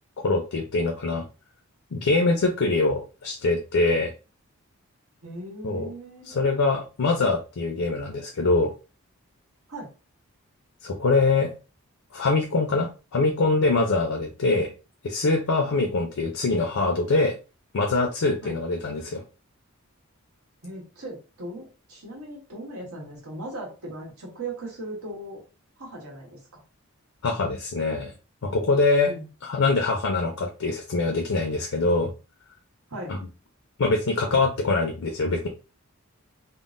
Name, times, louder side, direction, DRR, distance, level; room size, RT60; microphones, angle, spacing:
voice 1, 0.2-1.2 1.9-4.1 5.6-5.9 6.2-8.7 10.8-11.5 12.1-14.7 15.0-17.4 17.7-19.2 27.2-28.1 28.4-29.1 29.4-32.1 33.1-33.2 33.8-35.5, left 3 dB, 70° left, 3 dB, 0.5 m, -23 dB
voice 2, 5.2-6.5 9.7-9.9 18.4-18.6 20.6-25.4 25.8-26.6 29.0-29.3 32.9-33.1, right 1 dB, 85° right, -1 dB, 1.3 m, -38 dB
3.6 x 2.0 x 2.5 m, 0.32 s
head